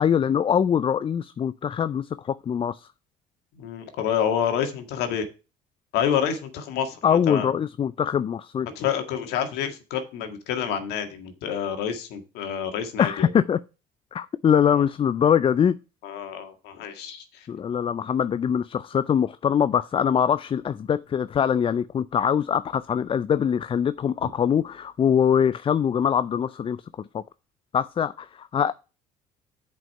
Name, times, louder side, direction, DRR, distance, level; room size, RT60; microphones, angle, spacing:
voice 1, 0.0-2.9 7.0-8.7 13.0-13.6 14.1-15.8 17.5-27.2 27.7-28.7, left 8 dB, 30° left, 0.4 m, -23 dB
voice 2, 3.6-5.3 5.9-7.5 8.8-13.3 14.7-14.8 16.0-17.5, left 8 dB, 70° left, 1.8 m, -28 dB
7.5 x 5.3 x 5.6 m
hypercardioid pair, 70°, 17 cm